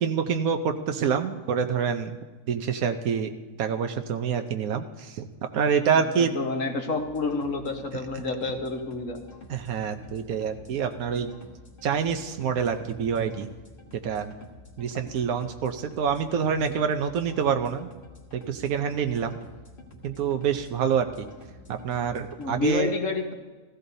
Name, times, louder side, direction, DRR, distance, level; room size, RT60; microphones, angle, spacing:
voice 1, 0.0-2.1 2.5-3.3 3.6-5.3 5.5-6.3 9.5-11.3 11.8-13.5 14.0-14.3 14.8-17.9 18.5-19.4 20.0-21.3 21.7-22.9, right 7 dB, 90° right, 7 dB, 1.2 m, -26 dB
voice 2, 5.9-9.2 11.1-11.3 22.4-23.3, left 3 dB, 65° left, 4 dB, 1.6 m, -29 dB
sound 1, 7.0-22.7, left 2 dB, 40° left, 1.8 m, -49 dB
16.5 x 15.0 x 2.7 m, 1.3 s
omnidirectional pair, 1.5 m